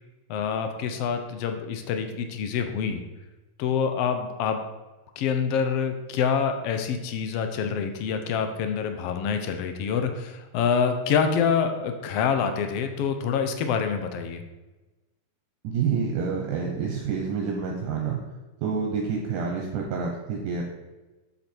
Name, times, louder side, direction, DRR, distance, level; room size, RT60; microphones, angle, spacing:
voice 1, 0.3-3.0 3.6-4.6 5.2-14.4, left 6 dB, 80° left, 6 dB, 1.4 m, -26 dB
voice 2, 15.6-18.2 18.6-20.6, right 5 dB, 75° right, 0 dB, 2.4 m, -28 dB
7.8 x 7.1 x 4.4 m, 1.1 s
omnidirectional pair, 3.7 m